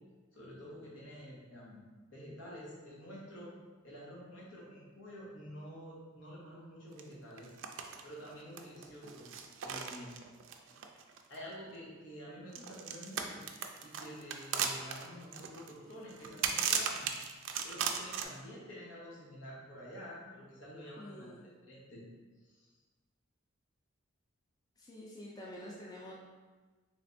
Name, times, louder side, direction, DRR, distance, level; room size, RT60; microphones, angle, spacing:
voice 1, 0.3-3.5 3.8-7.5 8.0-9.3 9.6-10.1 11.3-13.4 13.8-17.3 17.6-22.0 22.4-22.7, equal, 75° left, -6 dB, 1.1 m, -49 dB
sound 1, 7.0-7.1 7.4-8.0 8.3-11.5 12.5-18.2, right 7 dB, 70° right, 0.3 m, -37 dB
voice 2, 21.0-21.5 24.8-26.1, left 1 dB, 20° left, -3 dB, 0.4 m, -48 dB
3.3 x 3.3 x 2.6 m, 1.3 s
head